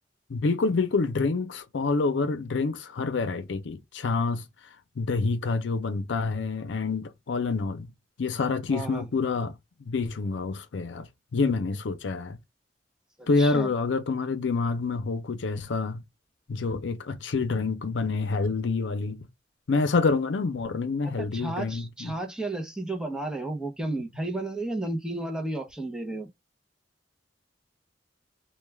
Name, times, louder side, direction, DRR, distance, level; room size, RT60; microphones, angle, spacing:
voice 1, 0.3-4.5 5.0-7.9 8.2-12.4 13.3-16.0 16.5-19.3 19.7-22.2, left 4 dB, 85° left, 0.5 m, -27 dB
voice 2, 8.7-9.0 13.2-13.7 21.0-26.3, right 2 dB, 5° right, 0.6 m, -33 dB
2.3 x 2.2 x 3.2 m
head